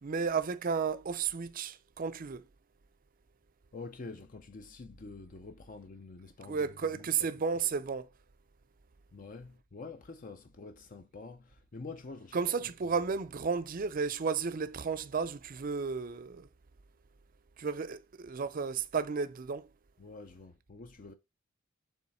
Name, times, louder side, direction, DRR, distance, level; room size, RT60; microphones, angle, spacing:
voice 1, 0.0-2.4 6.5-8.1 12.3-16.5 17.6-19.7, right 5 dB, 45° right, 0.5 m, -33 dB
voice 2, 3.7-7.0 9.1-12.4 20.0-21.1, left 3 dB, 40° left, 0.5 m, -47 dB
7.1 x 3.1 x 4.2 m
head